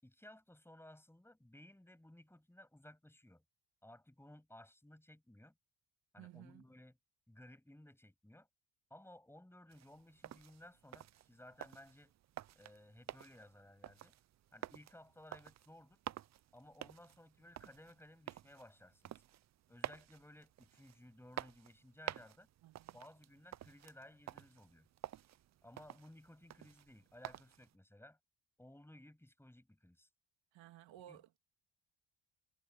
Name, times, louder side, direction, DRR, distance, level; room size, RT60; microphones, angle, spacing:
voice 1, 0.0-3.4 3.8-5.5 6.1-6.9 7.3-8.5 8.9-12.1 12.5-14.1 14.5-16.0 16.5-19.2 19.7-22.5 22.9-24.9 25.6-28.2 28.6-30.1 31.1-31.2, left 1 dB, 5° left, 7.4 m, -59 dB
voice 2, 6.2-6.6 22.6-23.0 30.5-31.4, right 13 dB, 80° right, 2.4 m, -56 dB
sound 1, 9.7-27.7, right 12 dB, 40° right, 0.4 m, -51 dB
cardioid pair, 120°, 45 cm